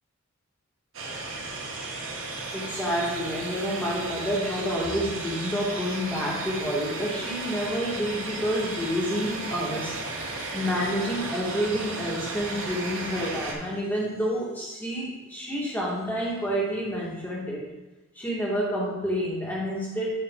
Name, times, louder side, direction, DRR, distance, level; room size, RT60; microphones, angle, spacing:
sound 1, 0.9-13.5, right 3 dB, 65° right, 1.2 m, -34 dB
voice 1, 2.5-10.0 10.5-17.7 18.1-20.1, equal, 10° left, -5 dB, 1.7 m, -29 dB
9.2 x 4.7 x 3.7 m, 1.0 s
head